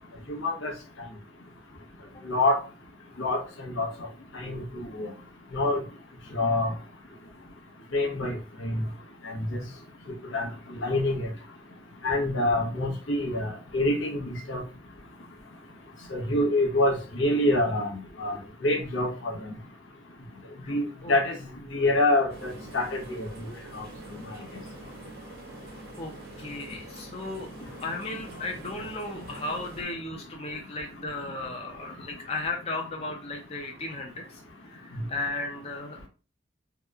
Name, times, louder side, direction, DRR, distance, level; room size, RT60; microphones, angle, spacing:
voice 1, 0.3-0.7 2.2-2.6 3.2-3.9 4.3-5.1 5.5-5.8 6.3-6.7 7.9-8.8 9.2-9.6 10.3-10.5 10.8-11.3 12.0-14.6 16.1-19.5 20.7-21.4 21.7-23.8, left 2 dB, 75° left, 2 dB, 0.8 m, -26 dB
sound 1, 22.3-29.8, right 2 dB, 50° right, 0.7 m, -45 dB
voice 2, 26.0-27.5 27.8-34.4 34.7-36.0, left 2 dB, 30° left, 1 dB, 0.5 m, -35 dB
2.9 x 2.1 x 3.5 m, 0.34 s
head